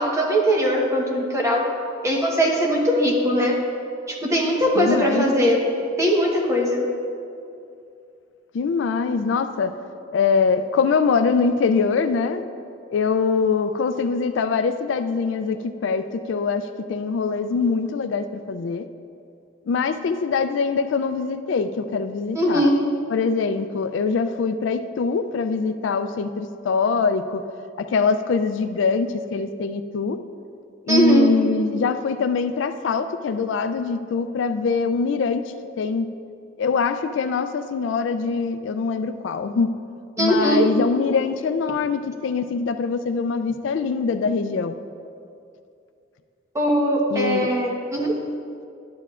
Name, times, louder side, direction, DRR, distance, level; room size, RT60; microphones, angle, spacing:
voice 1, 0.0-1.6 2.0-3.6 4.1-5.6 6.0-6.8 22.3-22.7 30.9-31.3 40.2-40.6 46.5-48.1, equal, 15° right, -1 dB, 1.0 m, -20 dB
voice 2, 4.8-5.3 8.5-9.7 10.1-12.4 12.9-18.9 19.7-22.7 23.1-27.4 27.8-30.2 30.8-35.4 35.8-36.1 36.6-39.7 40.2-44.8 47.1-47.5, left 5 dB, 65° left, 9 dB, 0.3 m, -23 dB
11.5 x 9.5 x 2.4 m, 2.5 s
head